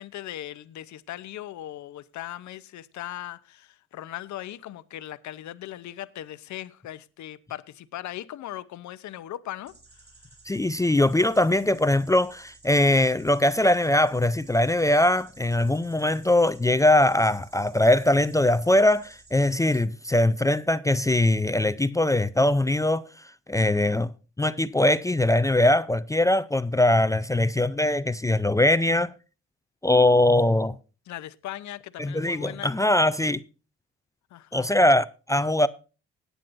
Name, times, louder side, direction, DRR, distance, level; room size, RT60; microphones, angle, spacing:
voice 1, 0.0-10.1 31.1-32.7 34.3-34.7, left 13 dB, 70° left, 0.7 m, -39 dB
sound 1, 9.7-19.8, right 3 dB, 35° right, 5.0 m, -54 dB
voice 2, 10.5-23.1 23.5-24.1 24.4-29.1 29.8-30.7 32.0-33.4 34.5-35.7, left 1 dB, 10° left, 0.4 m, -21 dB
18.0 x 9.3 x 2.6 m
cardioid pair, 90°, 30 cm